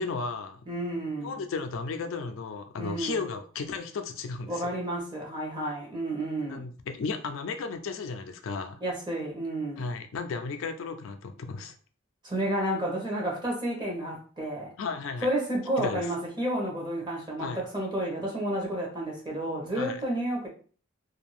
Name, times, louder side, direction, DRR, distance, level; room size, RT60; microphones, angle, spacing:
voice 1, 0.0-0.6 1.2-4.7 6.5-8.8 9.8-11.7 14.8-15.3 15.8-16.0 17.4-17.6 19.7-20.0, left 4 dB, 70° left, 7 dB, 0.4 m, -34 dB
voice 2, 0.7-1.4 2.8-3.2 4.5-6.7 8.8-9.9 12.2-14.7 15.2-20.5, right 1 dB, 20° right, -2 dB, 1.0 m, -31 dB
2.6 x 2.3 x 3.0 m, 0.42 s
head